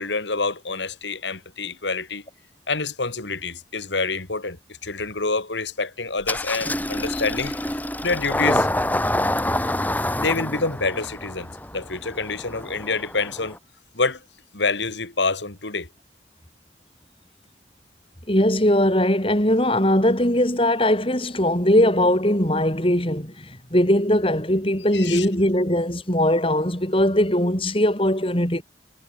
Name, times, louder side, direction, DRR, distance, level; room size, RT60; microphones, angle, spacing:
voice 1, 0.0-2.2 2.7-4.6 4.8-8.7 10.2-13.6 13.9-14.2 14.5-15.9 24.9-25.3, left 3 dB, 80° left, 2.8 m, -27 dB
Engine starting, 6.2-13.6, left 1 dB, 10° left, 4.2 m, -27 dB
voice 2, 18.3-28.6, left 1 dB, 30° left, 6.3 m, -20 dB
head